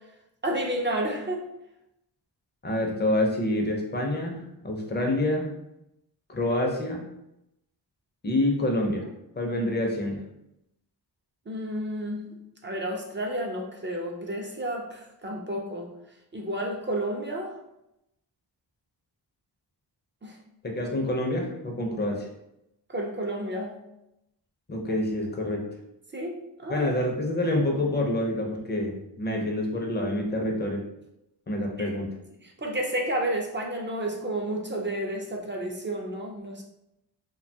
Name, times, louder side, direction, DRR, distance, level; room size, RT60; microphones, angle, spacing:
voice 1, 0.4-1.4 11.5-12.3 12.6-15.9 16.3-17.5 20.2-20.3 22.9-23.8 26.1-26.9 31.8-31.9 32.4-36.6, right 1 dB, 30° right, 0 dB, 0.4 m, -31 dB
voice 2, 2.6-5.5 6.3-7.0 8.2-9.1 9.4-10.2 20.6-22.3 24.7-25.6 26.7-30.8 31.5-32.1, left 1 dB, 25° left, 1 dB, 0.5 m, -27 dB
2.7 x 2.2 x 2.6 m, 0.87 s
wide cardioid pair, 95°, 43 cm